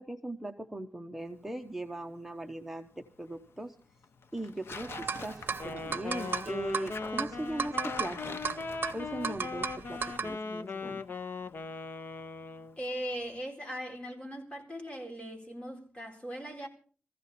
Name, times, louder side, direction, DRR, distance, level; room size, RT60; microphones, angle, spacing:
voice 1, 0.0-3.8 4.3-8.4 8.9-11.0, right 1 dB, 5° right, 1.0 m, -39 dB
Tearing, 1.2-13.4, left 5 dB, 90° left, 0.9 m, -49 dB
sound 1, 4.7-10.3, right 6 dB, 55° right, 0.8 m, -36 dB
Wind instrument woodwind instrument, 5.5-12.8, left 4 dB, 60° left, 0.9 m, -39 dB
voice 2, 12.8-16.7, equal, 30° left, 4.4 m, -39 dB
21.5 x 15.0 x 4.3 m
wide cardioid pair, 100°, 4 cm